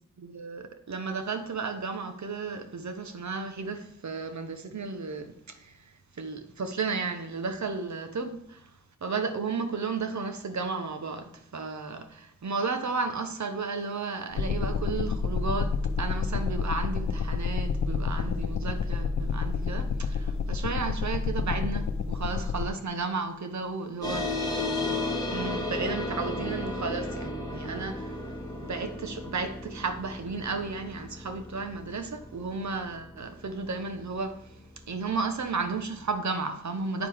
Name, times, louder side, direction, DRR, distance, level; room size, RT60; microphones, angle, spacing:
voice 1, 0.2-5.7 6.2-8.6 9.0-24.2 25.3-28.1 28.6-34.4 34.9-37.1, right 4 dB, 60° right, 1.1 m, -33 dB
sound 1, 14.4-22.7, left 5 dB, 75° left, 0.7 m, -29 dB
sound 2, 24.0-34.9, left 2 dB, 10° left, 2.6 m, -34 dB
9.3 x 9.3 x 3.6 m
wide cardioid pair, 95°, 31 cm